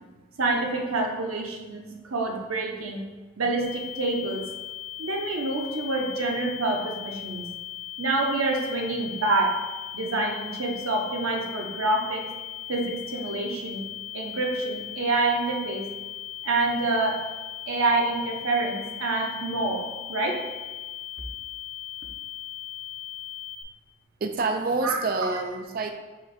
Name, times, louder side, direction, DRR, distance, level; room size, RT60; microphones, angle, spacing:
voice 1, 0.4-3.0 3.4-4.4 5.0-7.4 8.0-9.6 9.9-12.2 12.7-13.8 14.1-15.9 16.4-17.2 17.7-20.4 24.8-25.0, right 2 dB, 90° right, 1 dB, 0.8 m, -27 dB
sound 1, 3.6-23.6, left 12 dB, 80° left, 0.5 m, -38 dB
voice 2, 24.2-25.9, right 3 dB, 45° right, 6 dB, 0.3 m, -27 dB
4.8 x 2.5 x 4.1 m, 1.2 s
head